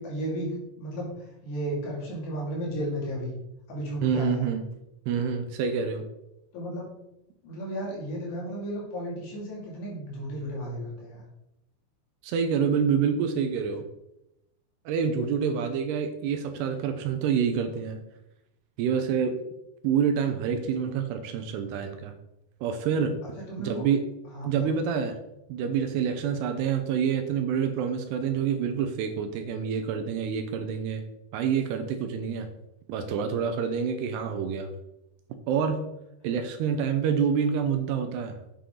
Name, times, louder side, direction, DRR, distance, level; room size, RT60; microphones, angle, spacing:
voice 1, 0.0-3.3 3.7-4.5 6.5-6.9 7.4-11.2 23.2-23.9 24.3-24.8, equal, 70° left, -3 dB, 4.6 m, -34 dB
voice 2, 4.0-4.6 5.1-6.1 12.2-13.9 14.9-18.0 18.8-19.4 19.8-22.1 22.6-23.2 23.6-24.0 24.4-25.2 25.5-31.0 31.3-32.5 32.9-34.7 35.5-35.8 36.2-38.4, right 7 dB, 80° right, 7 dB, 2.7 m, -27 dB
8.5 x 7.8 x 3.9 m, 0.87 s
omnidirectional pair, 5.1 m